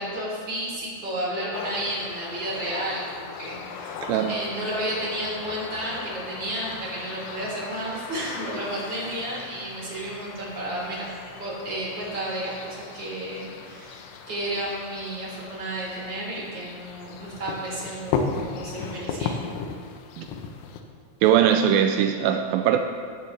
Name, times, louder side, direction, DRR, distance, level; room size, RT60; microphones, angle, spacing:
voice 1, 0.0-11.1 11.4-19.4, right 1 dB, 25° right, -6 dB, 4.1 m, -32 dB
sound 1, 1.5-20.8, left 5 dB, 90° left, 3.1 m, -36 dB
voice 2, 4.0-4.3 20.2-20.3 21.2-22.8, right 9 dB, 85° right, 6 dB, 2.1 m, -20 dB
16.0 x 13.0 x 3.3 m, 2.1 s
omnidirectional pair, 4.7 m